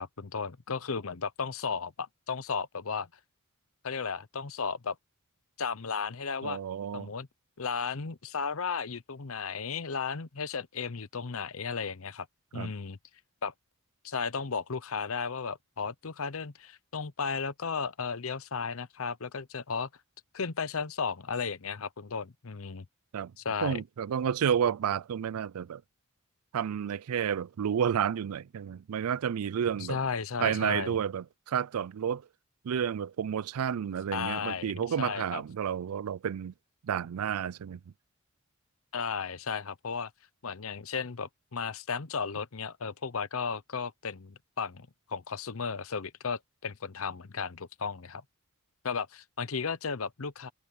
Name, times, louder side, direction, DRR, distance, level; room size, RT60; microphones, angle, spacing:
voice 1, 0.0-3.1 3.8-5.0 5.6-6.6 6.9-7.3 7.6-12.3 12.5-13.0 13.4-13.5 14.0-19.9 20.3-22.8 23.4-23.8 29.8-31.0 34.1-34.7 35.0-35.4 38.9-40.1 40.4-48.2 48.8-50.5, left 5 dB, 70° left, 0.8 m, -34 dB
voice 2, 6.4-7.1 12.5-12.7 23.1-23.3 23.6-25.8 26.5-30.0 30.4-32.3 32.6-36.5 36.8-37.8, right 8 dB, 90° right, 0.4 m, -31 dB
head